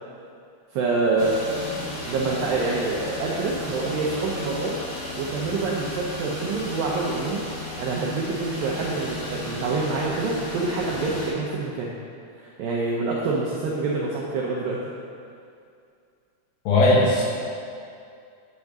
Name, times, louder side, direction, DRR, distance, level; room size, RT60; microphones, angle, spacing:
voice 1, 0.7-1.4 2.1-4.8 5.2-7.4 7.8-12.0 12.4-14.8, right 3 dB, 85° right, -4 dB, 2.0 m, -26 dB
sound 1, 1.2-11.3, left 1 dB, 60° left, 1.9 m, -34 dB
voice 2, 16.7-17.2, left 2 dB, 85° left, -5 dB, 3.6 m, -17 dB
8.2 x 3.5 x 6.5 m, 2.4 s
omnidirectional pair, 4.8 m